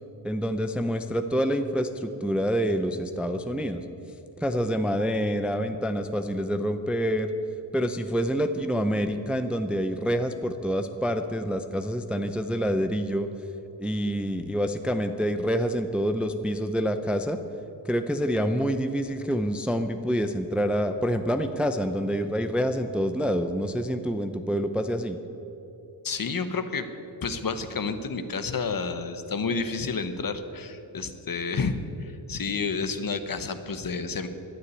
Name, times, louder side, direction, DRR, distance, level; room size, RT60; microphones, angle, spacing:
voice 1, 0.2-3.8 4.4-7.3 7.7-13.3 13.8-17.4 17.8-25.2, equal, 5° right, 8 dB, 0.5 m, -27 dB
voice 2, 26.0-26.9 27.2-34.3, left 4 dB, 45° left, 10 dB, 1.0 m, -30 dB
11.5 x 9.7 x 9.5 m, 3.0 s
wide cardioid pair, 140°, 46 cm